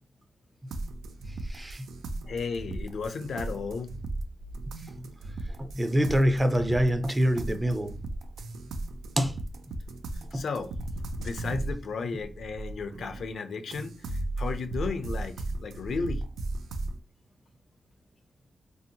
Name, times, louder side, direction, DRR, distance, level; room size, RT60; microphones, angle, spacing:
sound 1, 0.7-13.3 13.7-17.0, right 2 dB, 85° right, 0.3 m, -36 dB
voice 1, 1.5-1.8 5.6-7.9 9.2-9.3 10.3-10.4, equal, 15° right, 0.4 m, -25 dB
voice 2, 2.2-3.9 10.1-10.7 11.2-16.2, left 4 dB, 70° left, 0.4 m, -34 dB
2.6 x 2.1 x 2.7 m
cardioid pair, 65°, 0 cm